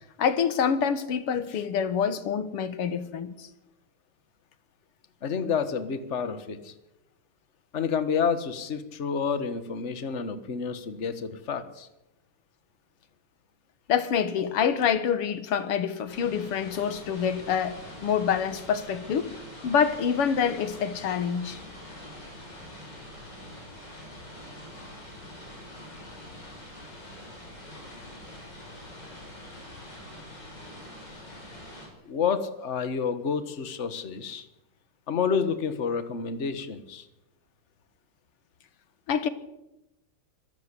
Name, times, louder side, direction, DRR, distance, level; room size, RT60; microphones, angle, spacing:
voice 1, 0.2-3.5 13.9-19.4 19.6-21.6 39.1-39.3, left 7 dB, 90° left, 2.4 m, -26 dB
voice 2, 5.2-6.7 7.7-11.9 32.0-34.5 35.1-37.1, left 6 dB, 35° left, 1.6 m, -29 dB
sound 1, 16.1-31.9, left 1 dB, 50° left, 6.8 m, -44 dB
24.5 x 13.5 x 8.4 m
omnidirectional pair, 2.4 m